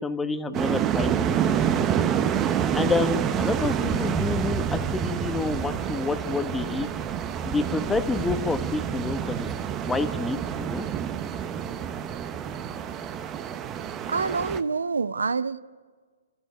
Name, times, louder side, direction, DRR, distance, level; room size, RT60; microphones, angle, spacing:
voice 1, 0.0-1.4 1.8-1.9 2.7-6.9 7.4-9.5 9.8-10.9, left 3 dB, 10° left, 1.1 m, -28 dB
sound 1, 0.5-14.6, right 8 dB, 20° right, 1.0 m, -28 dB
voice 2, 14.1-15.6, right 4 dB, 75° right, 0.6 m, -26 dB
29.5 x 14.5 x 9.4 m
figure-of-eight pair, 130°, 0 cm